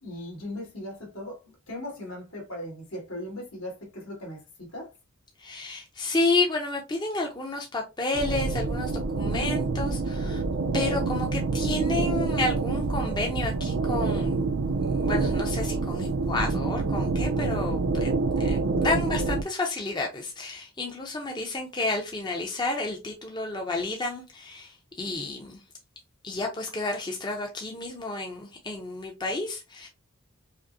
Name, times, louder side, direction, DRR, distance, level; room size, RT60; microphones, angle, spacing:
voice 1, 0.0-1.4 1.7-4.9, left 1 dB, 80° left, 2.0 m, -38 dB
voice 2, 5.4-8.9 9.2-10.4 10.7-14.4 14.7-18.1 18.4-25.6 26.2-29.9, left 2 dB, 20° left, 0.6 m, -31 dB
sound 1, 8.1-19.4, right 3 dB, 65° right, 0.4 m, -27 dB
5.0 x 2.1 x 2.6 m
head